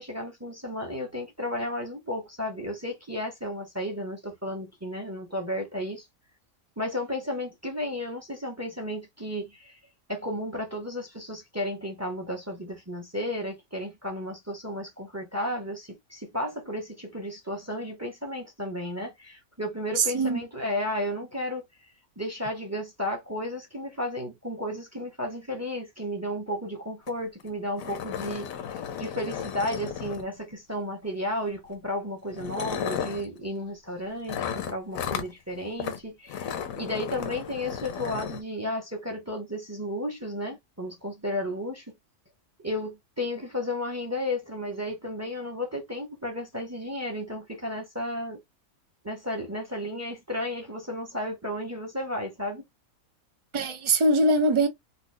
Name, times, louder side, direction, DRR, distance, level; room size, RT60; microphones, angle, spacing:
voice 1, 0.0-6.1 6.8-9.8 10.1-21.6 22.2-28.5 29.0-36.5 36.8-41.9 42.6-48.4 49.0-52.6, left 1 dB, 15° right, 0.7 m, -33 dB
voice 2, 20.0-20.4 53.5-54.7, right 2 dB, 50° right, 0.3 m, -22 dB
sound 1, 27.1-27.2 27.4-27.5 27.8-30.5 31.5-31.7 32.3-33.3 34.3-35.3 35.8-36.0 36.3-38.4, left 8 dB, 75° left, 1.1 m, -34 dB
4.2 x 2.3 x 2.2 m
omnidirectional pair, 1.5 m